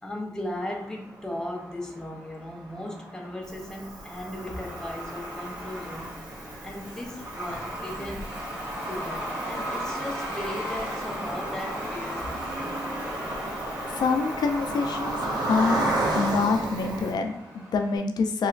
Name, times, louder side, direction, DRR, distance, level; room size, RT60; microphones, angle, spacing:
voice 1, 0.0-6.1 6.6-8.4 8.8-12.9, left 1 dB, 10° left, 0.4 m, -37 dB
Truck, 0.5-18.0, equal, 15° right, 1.3 m, -38 dB
Cricket, 3.4-17.1, right 1 dB, 90° right, 0.6 m, -33 dB
voice 2, 13.9-15.2 15.5-15.8 16.1-18.5, left 4 dB, 75° left, 0.3 m, -26 dB
3.1 x 2.9 x 2.4 m
wide cardioid pair, 175°, 7 cm